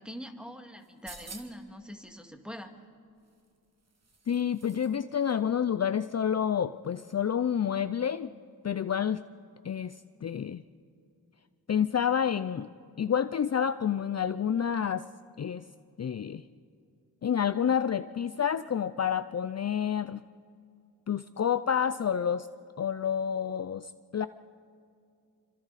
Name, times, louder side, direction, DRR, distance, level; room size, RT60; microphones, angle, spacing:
voice 1, 0.0-2.7, equal, ahead, 4 dB, 2.2 m, -43 dB
sound 1, 0.8-1.7 3.2-5.0 5.3-5.4, right 3 dB, 45° right, 2.4 m, -50 dB
voice 2, 4.3-8.3 8.6-9.2 9.6-9.9 10.2-10.6 11.7-12.7 13.0-15.0 15.4-15.6 16.0-16.4 17.2-20.2 21.1-22.5 22.8-24.3, left 8 dB, 45° left, 12 dB, 0.5 m, -29 dB
27.0 x 25.5 x 4.2 m, 2.4 s
wide cardioid pair, 75°, 37 cm